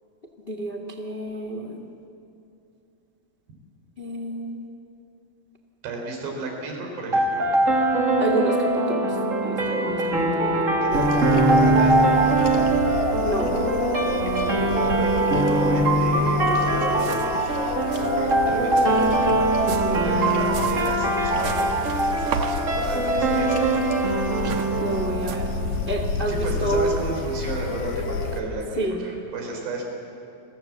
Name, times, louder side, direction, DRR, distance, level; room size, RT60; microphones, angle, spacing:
voice 1, 0.5-1.9 4.0-4.6 8.2-9.2 9.4-11.0 13.2-13.6 19.6-20.0 24.8-25.5 25.9-27.0 28.8-29.0, right 1 dB, 80° left, 3 dB, 0.5 m, -29 dB
voice 2, 5.8-7.5 10.8-12.7 14.6-17.5 18.2-19.3 19.6-24.4 26.3-29.8, right 2 dB, 85° right, 1 dB, 6.4 m, -33 dB
sound 1, 7.1-26.1, right 2 dB, 35° right, 1.2 m, -22 dB
sound 2, 10.9-28.4, left 4 dB, 55° left, 2.8 m, -30 dB
sound 3, 16.5-16.6 16.8-17.4 17.7-18.1 18.7-25.4, right 7 dB, 65° right, 1.9 m, -36 dB
30.0 x 23.0 x 7.5 m, 2.7 s
omnidirectional pair, 4.8 m